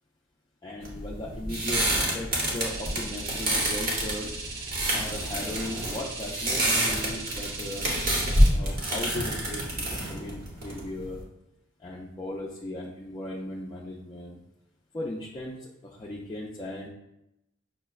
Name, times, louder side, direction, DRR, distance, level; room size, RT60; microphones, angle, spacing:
voice 1, 0.6-1.8 2.1-4.4 4.9-7.9 8.5-11.2 11.8-14.4 14.9-16.9, left 1 dB, 20° left, -5 dB, 0.3 m, -37 dB
sound 1, 0.8-11.2, right 1 dB, 50° right, 0.8 m, -27 dB
sound 2, 2.6-8.5, right 3 dB, 85° right, 0.7 m, -39 dB
5.7 x 2.1 x 2.3 m, 0.87 s
head